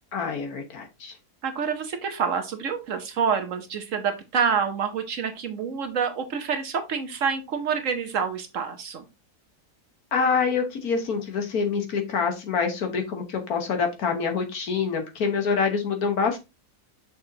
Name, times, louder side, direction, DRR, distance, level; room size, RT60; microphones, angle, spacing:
voice 1, 0.1-1.1 10.1-16.4, left 5 dB, 70° left, 4 dB, 1.7 m, -26 dB
voice 2, 1.4-9.0, right 6 dB, 60° right, 7 dB, 1.1 m, -27 dB
6.4 x 5.9 x 2.8 m, 0.25 s
omnidirectional pair, 1.7 m